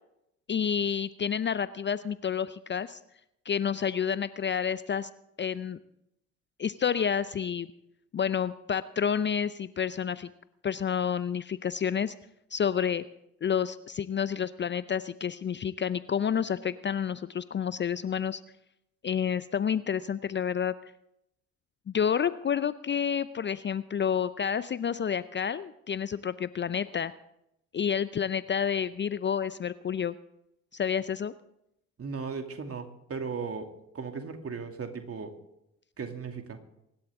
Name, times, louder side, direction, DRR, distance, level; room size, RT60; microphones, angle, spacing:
voice 1, 0.5-3.0 3.5-5.1 5.4-5.8 6.6-7.7 8.1-10.3 10.6-12.1 12.5-13.0 13.4-18.4 19.0-20.7 21.9-27.1 27.7-30.1 30.7-31.3, left 7 dB, 30° left, 15 dB, 0.6 m, -29 dB
voice 2, 32.0-35.3 36.0-36.6, right 5 dB, 40° right, 5 dB, 2.6 m, -37 dB
24.0 x 12.0 x 3.7 m, 0.81 s
hypercardioid pair, 50°, 37 cm